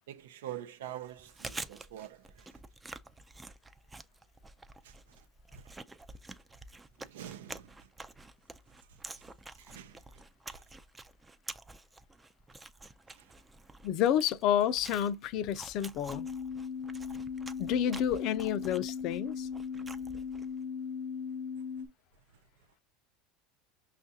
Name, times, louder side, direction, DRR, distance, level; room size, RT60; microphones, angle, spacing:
voice 1, 0.1-2.5 4.8-5.2 5.5-5.7 7.0-7.9 9.6-10.2 10.5-10.6 13.1-13.3 19.7-20.1, right 12 dB, 85° right, 0.4 m, -46 dB
Chewing mastication, 1.1-20.6, right 2 dB, 15° right, 0.3 m, -48 dB
voice 2, 13.8-16.3 17.6-19.5, left 10 dB, 55° left, 0.4 m, -29 dB
sound 1, 16.1-21.9, left 6 dB, 85° left, 0.7 m, -38 dB
5.7 x 2.4 x 2.6 m
supercardioid pair, 115°, 0 cm